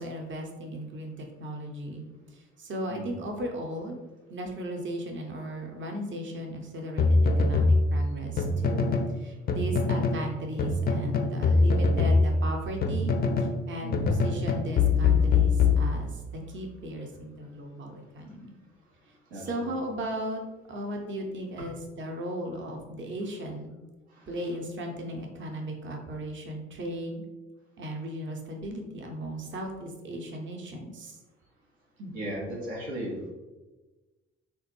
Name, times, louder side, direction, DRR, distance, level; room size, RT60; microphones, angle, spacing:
voice 1, 0.0-4.0 4.3-13.1 13.4-18.5 19.3-20.4 20.7-23.8 24.3-27.2 27.8-31.2 32.0-32.1, right 1 dB, 35° right, 2 dB, 0.7 m, -36 dB
sound 1, 7.0-9.1 9.5-10.2 10.6-13.6 13.9-16.3, left 4 dB, 30° left, 0.4 m, -23 dB
voice 2, 19.3-19.7 24.1-24.3 32.1-33.3, right 1 dB, 85° right, -3 dB, 0.6 m, -36 dB
3.4 x 2.2 x 3.0 m, 1.2 s
figure-of-eight pair, 40°, 33 cm